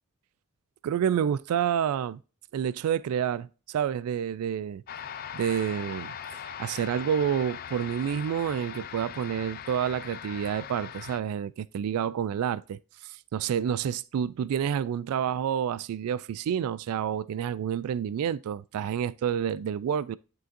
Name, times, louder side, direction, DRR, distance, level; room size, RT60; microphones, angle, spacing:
voice 1, 0.8-2.2 2.5-4.8 5.3-20.2, right 8 dB, 85° right, 0.3 m, -29 dB
sound 1, 4.9-11.2, left 8 dB, 40° left, 0.3 m, -40 dB
11.0 x 3.9 x 2.5 m
head